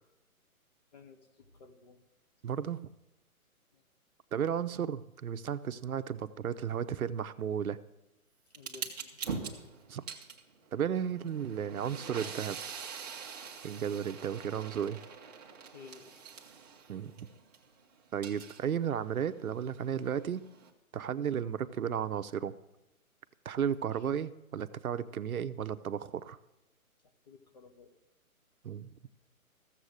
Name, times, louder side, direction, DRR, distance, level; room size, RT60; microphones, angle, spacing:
voice 1, 0.9-2.0 3.7-3.8 8.5-9.2 15.7-16.2 23.7-24.1 27.3-27.9, left 5 dB, 30° left, 7 dB, 1.0 m, -54 dB
voice 2, 2.4-2.8 4.3-7.8 9.9-10.0 10.7-12.6 13.6-15.0 16.9-17.3 18.1-20.4 20.9-22.5 23.4-26.4 28.6-28.9, right 8 dB, 70° right, 12 dB, 0.8 m, -34 dB
sound 1, 8.5-17.6 18.0-20.7, right 6 dB, 25° right, 1.2 m, -44 dB
15.0 x 7.5 x 6.4 m, 0.90 s
hypercardioid pair, 165°, 44 cm